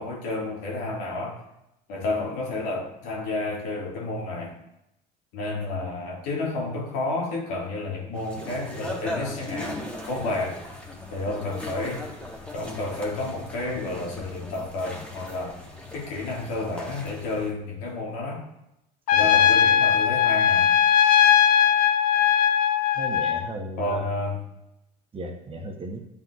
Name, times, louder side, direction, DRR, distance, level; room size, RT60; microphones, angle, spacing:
voice 1, 0.0-1.4 1.9-4.6 5.3-10.6 11.1-12.1 12.5-15.6 15.9-18.4 19.1-20.7 23.8-24.4, left 2 dB, 80° left, -2 dB, 1.9 m, -30 dB
sound 1, 8.1-17.5, left 1 dB, 5° left, 1.3 m, -38 dB
Trumpet, 19.1-23.4, left 9 dB, 45° left, 0.4 m, -19 dB
voice 2, 22.9-24.0 25.1-26.0, right 1 dB, 25° right, 2 dB, 1.0 m, -35 dB
11.0 x 3.7 x 2.4 m, 0.83 s
supercardioid pair, 90°, 20 cm